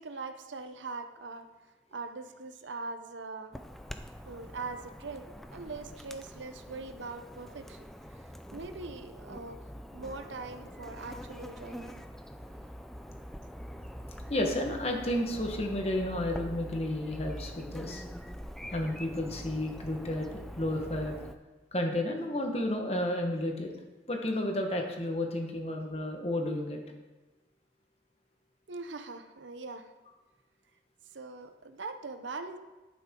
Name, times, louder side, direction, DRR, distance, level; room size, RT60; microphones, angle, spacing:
voice 1, 0.0-1.5 1.9-3.5 4.2-7.9 8.1-9.6 9.9-11.9 28.7-29.9 31.1-32.6, right 3 dB, 85° right, 8 dB, 0.8 m, -42 dB
Chirp tweet / Buzz, 3.5-21.3, equal, ahead, 0.4 m, -44 dB
voice 2, 14.3-18.0 18.7-21.1 21.7-23.7 24.1-26.8, left 1 dB, 35° left, 2 dB, 1.3 m, -32 dB
11.0 x 9.3 x 3.8 m, 1.2 s
head